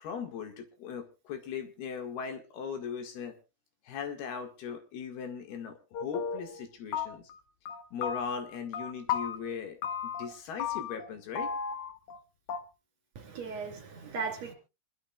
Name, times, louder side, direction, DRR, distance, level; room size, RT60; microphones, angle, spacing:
voice 1, 0.0-3.4 3.9-7.3 7.9-9.8 10.0-11.5, left 6 dB, 80° left, 6 dB, 3.9 m, -39 dB
sound 1, 5.9-6.6 6.9-7.4 7.7-9.4 9.8-10.3 10.6-11.1 11.4-12.2 12.5-12.6, left 7 dB, 65° left, 2.2 m, -34 dB
voice 2, 13.2-14.5, right 5 dB, 45° right, 4 dB, 3.7 m, -37 dB
26.0 x 12.0 x 2.5 m, 0.29 s
omnidirectional pair, 4.5 m